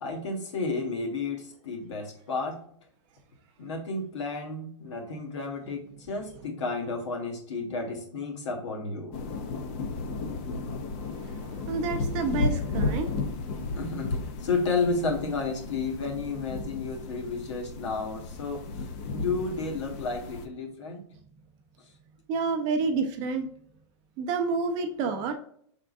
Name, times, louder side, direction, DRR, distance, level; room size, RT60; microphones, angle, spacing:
voice 1, 0.0-2.6 3.6-9.1 13.8-21.0, left 3 dB, 75° left, 2 dB, 1.4 m, -32 dB
sound 1, 9.1-20.5, left 3 dB, 30° left, 0.5 m, -34 dB
voice 2, 11.0-13.3 22.3-23.5 24.2-25.3, right 4 dB, 25° right, 5 dB, 0.5 m, -29 dB
4.9 x 3.6 x 2.5 m, 0.62 s
supercardioid pair, 165°, 15 cm